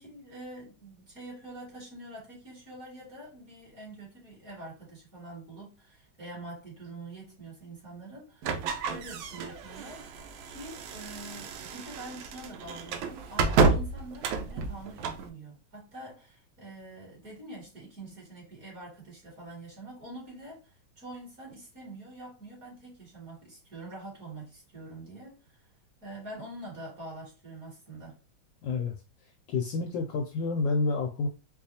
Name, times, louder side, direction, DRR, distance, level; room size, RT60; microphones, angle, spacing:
voice 1, 0.0-25.6 26.0-28.2, right 2 dB, 40° right, 2.5 m, -45 dB
sound 1, 8.4-15.3, right 4 dB, 75° right, 1.3 m, -30 dB
voice 2, 28.6-28.9 29.2-31.3, left 4 dB, 75° left, 1.1 m, -29 dB
4.7 x 2.3 x 2.7 m
omnidirectional pair, 2.3 m